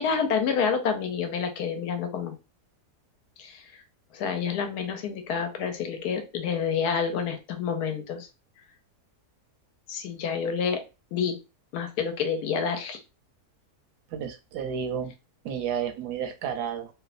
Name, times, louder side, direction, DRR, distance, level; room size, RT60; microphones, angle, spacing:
voice 1, 0.0-2.3 3.4-3.7 4.1-8.3 9.9-10.8 11.1-11.4 11.7-13.0, left 6 dB, 80° left, 6 dB, 1.1 m, -28 dB
voice 2, 14.1-15.1 15.4-16.9, right 8 dB, 80° right, 7 dB, 1.1 m, -31 dB
3.0 x 2.1 x 2.4 m, 0.29 s
omnidirectional pair, 1.7 m